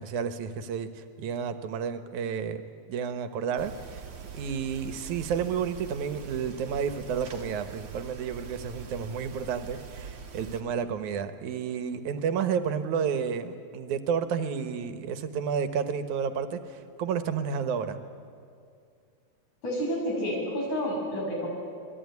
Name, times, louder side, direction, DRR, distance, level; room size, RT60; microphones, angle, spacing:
voice 1, 0.0-2.6 2.9-4.1 4.3-18.0, right 7 dB, 80° right, 9 dB, 2.6 m, -31 dB
sound 1, 3.6-10.6, right 6 dB, 50° right, 2.8 m, -43 dB
voice 2, 19.6-21.5, equal, 75° left, -1 dB, 8.0 m, -29 dB
27.5 x 20.0 x 9.5 m, 2.3 s
omnidirectional pair, 3.4 m